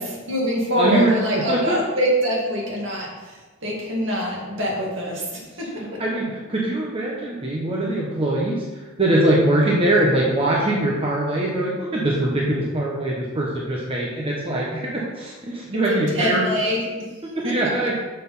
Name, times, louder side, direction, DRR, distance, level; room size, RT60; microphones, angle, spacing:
voice 1, 0.0-6.0 15.7-16.9 17.4-17.6, equal, 60° right, -3 dB, 2.4 m, -25 dB
voice 2, 0.8-1.8 5.8-8.6 9.0-16.4 17.2-18.0, right 1 dB, 25° right, -4 dB, 1.1 m, -22 dB
6.7 x 6.4 x 5.5 m, 1.2 s
head